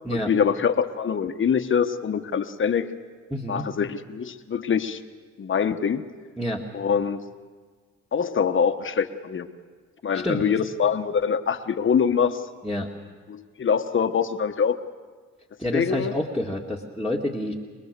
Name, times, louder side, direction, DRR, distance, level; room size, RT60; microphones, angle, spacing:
voice 1, 0.1-2.9 3.5-5.0 5.4-6.0 6.7-7.2 8.1-9.5 10.0-12.4 13.3-14.8 15.7-16.1, left 7 dB, 40° left, 8 dB, 1.2 m, -24 dB
voice 2, 3.3-3.7 6.4-6.6 10.1-10.4 12.6-12.9 15.6-17.5, left 1 dB, ahead, -3 dB, 2.0 m, -28 dB
24.5 x 20.5 x 6.8 m, 1.5 s
cardioid pair, 90°, 30 cm